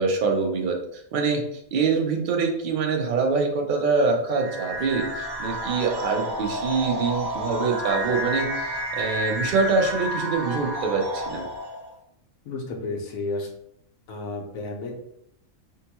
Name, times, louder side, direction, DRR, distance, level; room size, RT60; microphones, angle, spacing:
voice 1, 0.0-11.5, right 4 dB, 60° right, 2 dB, 0.5 m, -25 dB
sound 1, 4.3-11.9, equal, 85° right, 1.1 m, -30 dB
voice 2, 12.4-13.5 14.1-14.9, left 3 dB, 75° left, 1 dB, 1.1 m, -32 dB
3.7 x 2.2 x 2.8 m, 0.75 s
omnidirectional pair, 1.4 m